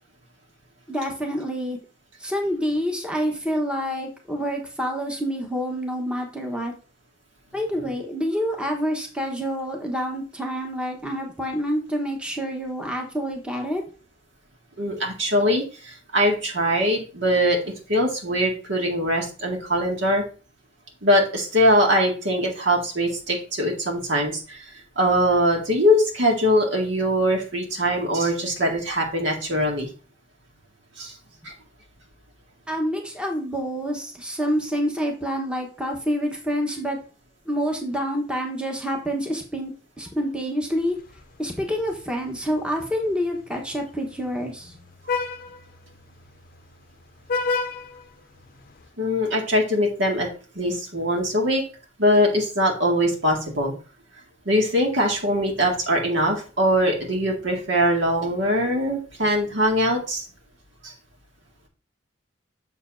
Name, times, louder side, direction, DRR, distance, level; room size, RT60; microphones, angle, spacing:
voice 1, 0.9-1.8 2.2-6.7 7.5-13.8 32.7-37.0 37.5-41.0 41.4-44.8, equal, 5° right, 1 dB, 1.1 m, -27 dB
voice 2, 14.8-17.6 17.9-20.2 21.0-24.6 25.0-29.9 31.0-31.1 31.4-31.5 45.1-45.2 49.0-50.3 50.6-51.6 52.0-53.7 54.5-60.3 60.8-60.9, equal, 75° right, 0 dB, 2.0 m, -22 dB
Vehicle horn car horn honking, 40.8-48.9, left 4 dB, 50° left, 0.6 m, -34 dB
6.8 x 6.8 x 2.6 m, 0.36 s
head